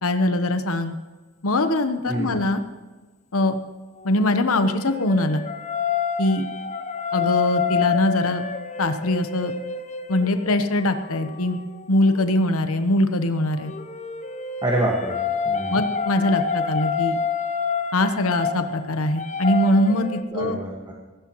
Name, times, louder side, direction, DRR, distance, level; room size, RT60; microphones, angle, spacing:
voice 1, 0.0-0.9 1.4-2.6 3.3-3.6 4.0-5.4 6.2-6.5 7.1-8.4 8.8-9.5 10.1-11.6 11.9-13.7 15.7-17.2 17.9-20.6, left 1 dB, 75° left, 8 dB, 1.0 m, -22 dB
voice 2, 2.1-2.4 14.6-15.8 20.3-20.9, right 1 dB, 20° right, -1 dB, 1.6 m, -27 dB
sound 1, 4.0-12.3 13.5-20.2, left 6 dB, 35° left, 0.8 m, -28 dB
16.0 x 15.5 x 3.1 m, 1.3 s
head